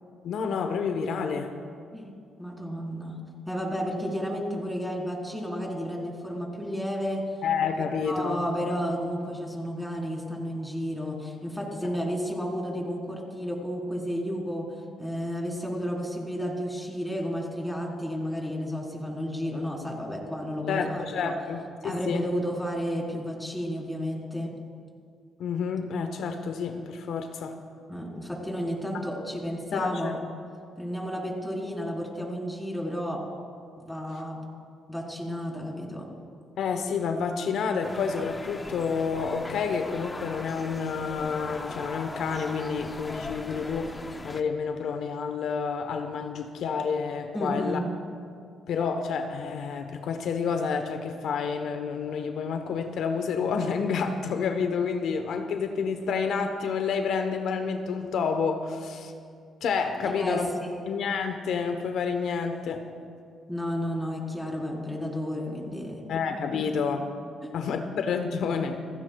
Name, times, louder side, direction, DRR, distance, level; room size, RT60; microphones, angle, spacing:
voice 1, 0.2-1.5 7.4-8.4 20.7-22.3 25.4-27.6 29.7-30.2 36.6-43.9 44.2-47.8 48.7-59.1 59.6-60.5 60.9-62.9 66.1-67.1 67.5-68.8, left 5 dB, 70° left, 6 dB, 1.0 m, -29 dB
voice 2, 2.4-3.2 3.5-7.2 7.8-14.7 15.0-21.3 21.8-24.5 27.9-30.2 30.8-33.2 33.8-34.4 34.9-36.1 47.3-47.9 60.0-60.9 63.5-66.0 66.5-66.6 67.4-67.5, equal, 5° left, -2 dB, 4.0 m, -32 dB
sound 1, 37.8-44.4, left 2 dB, 20° left, 0.8 m, -39 dB
28.0 x 16.5 x 2.3 m, 2.3 s
cardioid pair, 90°, 0 cm